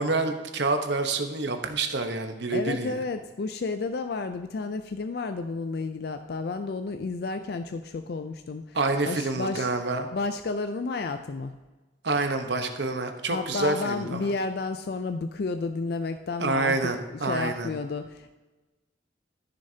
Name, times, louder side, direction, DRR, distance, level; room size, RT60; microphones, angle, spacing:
voice 1, 0.0-3.0 8.7-10.1 12.0-14.3 16.4-17.7, right 3 dB, 65° right, 6 dB, 0.9 m, -27 dB
voice 2, 2.5-8.8 9.1-9.7 10.1-11.5 13.3-16.7 17.2-18.3, left 3 dB, 55° left, 8 dB, 0.4 m, -31 dB
13.5 x 6.5 x 2.7 m, 1.2 s
head